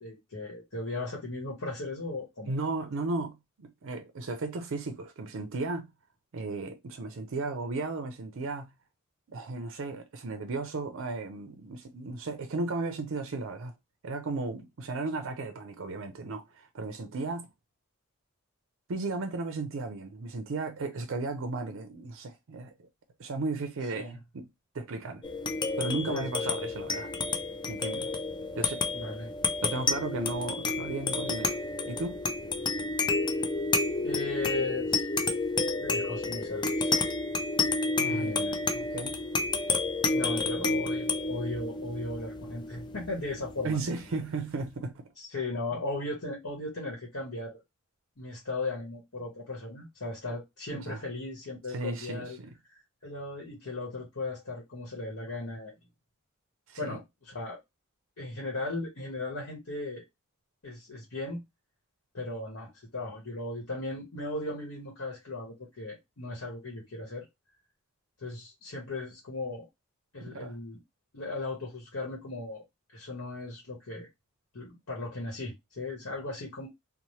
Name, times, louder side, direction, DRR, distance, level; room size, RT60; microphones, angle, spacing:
voice 1, 0.0-2.5 23.9-24.2 26.0-26.3 28.8-29.3 34.0-35.0 35.8-36.9 38.0-38.6 40.1-43.9 45.2-47.6 48.2-52.4 52.7-55.7 56.8-57.6 58.2-60.0 60.6-61.4 62.1-67.3 68.2-69.6 70.1-70.8 71.1-72.6 72.9-74.1 74.5-76.7, left 2 dB, 75° left, 1.0 m, -37 dB
voice 2, 2.4-5.9 6.3-8.7 9.3-13.7 14.0-17.5 18.9-22.9 23.2-24.5 24.7-25.2 25.8-27.1 27.7-28.1 28.5-28.8 29.6-31.6 31.9-32.2 37.9-38.5 38.7-39.2 43.6-45.1 50.9-51.0 51.7-52.5 56.7-57.0 70.2-70.6, right 3 dB, 65° right, 0.5 m, -35 dB
sound 1, 25.2-44.1, left 3 dB, 20° left, 0.3 m, -30 dB
2.7 x 2.0 x 3.0 m
head